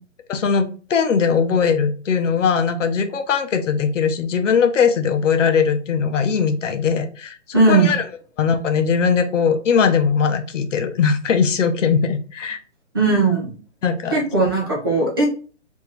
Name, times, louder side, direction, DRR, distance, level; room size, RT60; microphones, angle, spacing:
voice 1, 0.3-7.4 7.7-8.0 8.4-12.6 13.8-14.2, left 6 dB, 90° left, 8 dB, 0.6 m, -20 dB
voice 2, 7.5-7.9 12.9-13.5 14.1-15.3, right 3 dB, 20° right, -3 dB, 0.4 m, -17 dB
2.6 x 2.2 x 3.1 m, 0.38 s
hypercardioid pair, 150°, 36 cm